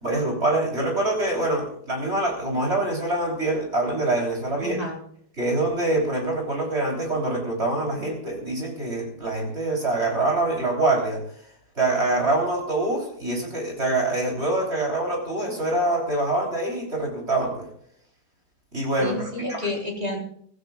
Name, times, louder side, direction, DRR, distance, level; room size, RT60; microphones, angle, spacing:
voice 1, 0.0-4.9 5.4-11.2 11.8-17.7 18.7-19.6, right 2 dB, 35° right, 0 dB, 3.9 m, -25 dB
voice 2, 4.6-5.0 19.0-20.2, left 2 dB, 20° right, -1 dB, 4.3 m, -30 dB
25.0 x 16.0 x 2.4 m, 0.63 s
omnidirectional pair, 1.8 m